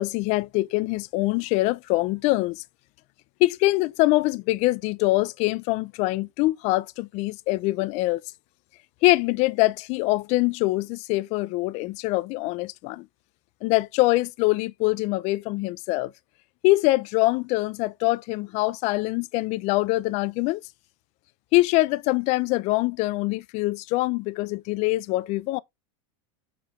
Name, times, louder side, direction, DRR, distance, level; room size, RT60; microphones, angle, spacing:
voice 1, 0.0-2.5 3.4-8.2 9.0-13.0 13.6-16.1 16.6-20.6 21.5-25.6, left 20 dB, 45° left, 0.6 m, -24 dB
7.6 x 4.8 x 3.8 m
supercardioid pair, 140°, 16 cm